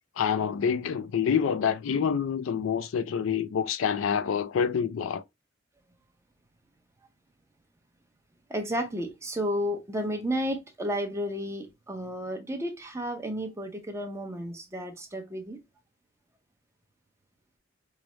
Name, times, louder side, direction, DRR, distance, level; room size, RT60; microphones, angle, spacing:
voice 1, 0.2-5.2, left 7 dB, 80° left, 0.3 m, -27 dB
voice 2, 8.5-15.6, equal, 15° right, 0.7 m, -32 dB
4.7 x 2.0 x 2.9 m
head